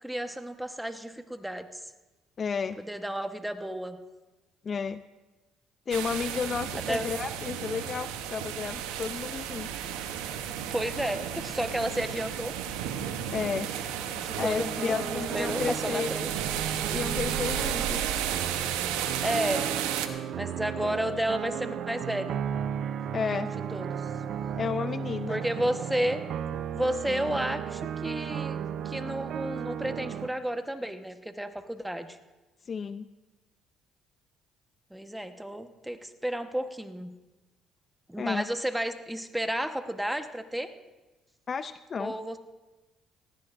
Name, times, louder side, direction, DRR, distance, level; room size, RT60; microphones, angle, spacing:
voice 1, 0.0-1.8 2.8-4.0 6.9-7.1 10.7-12.5 14.2-16.3 19.2-19.7 20.4-22.4 23.7-24.0 25.3-26.2 26.7-28.6 28.8-32.2 34.9-37.1 38.1-40.7 42.0-42.4, right 1 dB, 5° right, 8 dB, 1.1 m, -32 dB
voice 2, 2.4-2.8 4.6-5.0 5.9-9.7 13.3-13.7 14.4-16.1 16.9-18.0 23.1-23.5 24.5-25.4 32.7-33.1 38.2-38.4 41.5-42.1, left 6 dB, 45° left, 13 dB, 0.4 m, -32 dB
sound 1, 5.9-20.1, right 9 dB, 90° right, 0.8 m, -33 dB
sound 2, 14.3-30.3, right 8 dB, 65° right, 0.5 m, -35 dB
19.0 x 15.5 x 2.5 m, 1.1 s
supercardioid pair, 70°, 0 cm